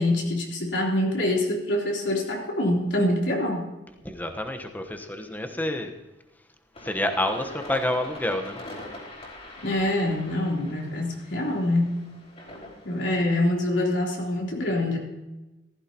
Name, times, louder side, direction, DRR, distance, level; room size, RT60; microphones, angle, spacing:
voice 1, 0.0-3.7 9.6-11.9 12.8-15.0, left 1 dB, 80° left, -2 dB, 3.6 m, -25 dB
voice 2, 4.0-5.9 6.8-8.6, left 1 dB, 10° left, 5 dB, 1.1 m, -28 dB
sound 1, 6.7-13.5, left 1 dB, 40° left, 4.5 m, -43 dB
15.5 x 15.0 x 3.0 m, 1.0 s
head